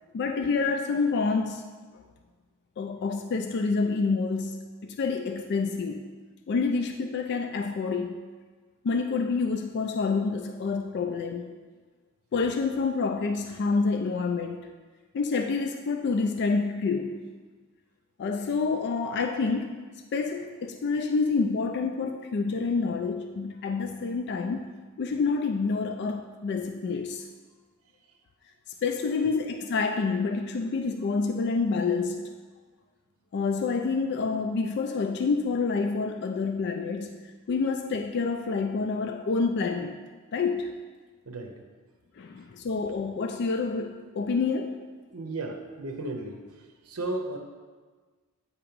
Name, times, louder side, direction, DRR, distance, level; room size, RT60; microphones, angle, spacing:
voice 1, 0.1-1.6 1.9-2.0 2.8-6.0 6.5-8.2 8.8-11.5 12.3-14.7 15.1-17.2 18.2-19.8 20.1-24.7 25.0-27.3 28.8-32.3 33.3-40.0 40.3-40.7 42.2-44.8, left 4 dB, 50° left, 5 dB, 0.3 m, -28 dB
voice 2, 45.1-46.4 46.8-47.4, right 2 dB, 75° right, 2 dB, 0.7 m, -34 dB
8.4 x 2.9 x 5.1 m, 1.4 s
head